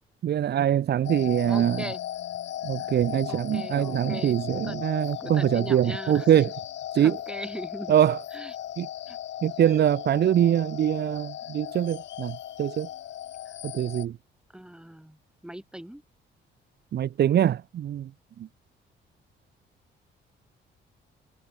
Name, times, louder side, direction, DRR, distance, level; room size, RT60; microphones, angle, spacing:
voice 1, 0.2-1.8 2.6-6.5 7.0-7.2 7.9-8.2 8.8-8.9 9.4-12.9 13.6-14.1 16.9-18.1, right 10 dB, 55° right, 0.7 m, -23 dB
sound 1, 1.0-14.1, left 12 dB, 65° left, 0.9 m, -37 dB
voice 2, 1.5-2.0 2.8-3.0 3.3-4.9 5.2-6.3 7.0-8.0 8.3-8.5 9.1-9.2 13.4-13.6 14.5-16.0, right 1 dB, 5° right, 3.2 m, -40 dB
cardioid pair, 90°, 20 cm